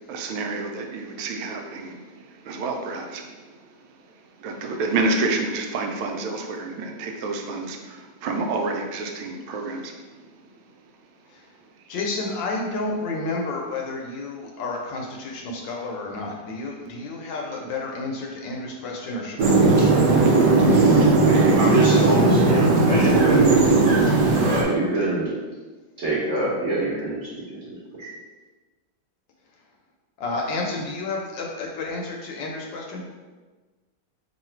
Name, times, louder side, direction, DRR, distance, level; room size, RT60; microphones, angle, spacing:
voice 1, 0.1-3.7 4.4-10.2, right 3 dB, 85° right, 3 dB, 1.4 m, -29 dB
voice 2, 11.9-20.3 30.2-33.0, left 3 dB, 75° left, 0 dB, 1.3 m, -31 dB
sound 1, 19.4-24.6, right 3 dB, 70° right, 1.1 m, -17 dB
voice 3, 20.6-24.1 24.4-25.3 26.0-27.6 28.0-28.1, right 2 dB, 45° right, -7 dB, 1.1 m, -25 dB
3.1 x 2.7 x 4.3 m, 1.3 s
omnidirectional pair, 2.1 m